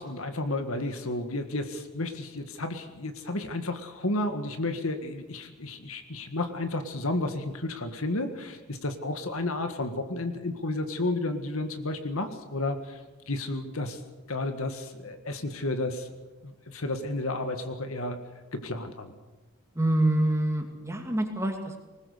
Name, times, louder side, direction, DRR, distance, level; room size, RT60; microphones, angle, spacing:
voice 1, 0.0-14.0 14.3-16.1 16.4-18.2 18.5-19.2, left 2 dB, 70° left, 7 dB, 1.8 m, -32 dB
voice 2, 19.7-21.8, right 1 dB, 15° right, 3 dB, 2.4 m, -26 dB
20.0 x 20.0 x 6.7 m, 1.2 s
head